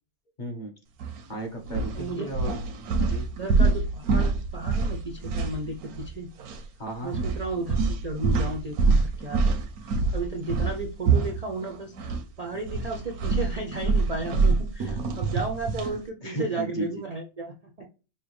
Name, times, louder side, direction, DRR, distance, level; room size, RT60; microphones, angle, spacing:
voice 1, 0.4-0.7 1.3-2.6 3.0-3.3 6.8-7.1 16.2-17.0, right 1 dB, 40° left, 2 dB, 0.8 m, -34 dB
sound 1, 1.0-1.2 1.6-6.1 6.4-6.6 7.1-12.2 12.5-16.0, right 4 dB, 85° right, 1.2 m, -26 dB
voice 2, 1.9-2.4 3.3-6.3 7.0-17.8, right 2 dB, 50° right, 2 dB, 0.4 m, -34 dB
5.7 x 2.3 x 3.1 m, 0.33 s
omnidirectional pair, 1.5 m